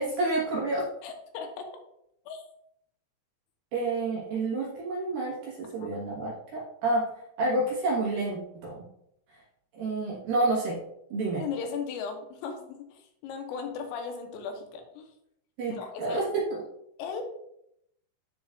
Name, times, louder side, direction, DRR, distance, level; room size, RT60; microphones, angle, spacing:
voice 1, 0.0-0.9 3.7-8.9 9.3-9.4 9.7-10.8 11.1-11.4 15.6-16.5, right 2 dB, 65° right, -4 dB, 2.5 m, -29 dB
voice 2, 1.0-1.7 2.3-2.4 5.8-5.9 11.4-15.1 15.7-16.2 17.0-17.2, left 6 dB, 85° left, 4 dB, 3.4 m, -37 dB
14.5 x 5.1 x 2.4 m, 0.76 s
omnidirectional pair, 5.9 m